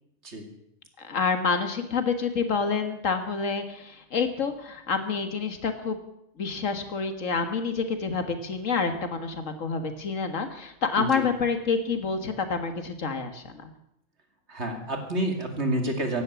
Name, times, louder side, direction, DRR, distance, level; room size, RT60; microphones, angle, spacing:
voice 1, 1.0-6.0 6.4-13.7, left 5 dB, 70° left, 7 dB, 2.0 m, -28 dB
voice 2, 14.5-16.2, right 1 dB, 55° right, 4 dB, 2.7 m, -29 dB
15.5 x 11.5 x 7.1 m, 0.80 s
omnidirectional pair, 1.4 m